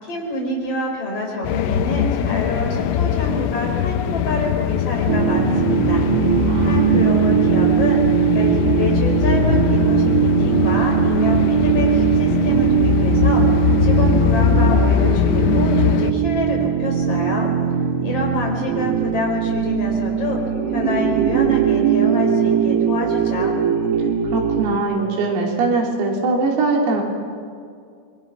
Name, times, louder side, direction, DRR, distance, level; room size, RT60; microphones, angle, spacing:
voice 1, 0.0-6.0 6.6-8.0 8.3-17.5 18.0-20.4 20.7-23.6, left 2 dB, 30° left, 0 dB, 5.1 m, -26 dB
sound 1, 1.4-16.1, left 9 dB, 90° left, 3.6 m, -21 dB
sound 2, 5.1-24.8, right 9 dB, 70° right, 3.3 m, -20 dB
voice 2, 6.5-7.1 24.3-27.0, right 3 dB, 90° right, 0 dB, 5.8 m, -21 dB
27.5 x 23.5 x 6.1 m, 2.3 s
omnidirectional pair, 5.8 m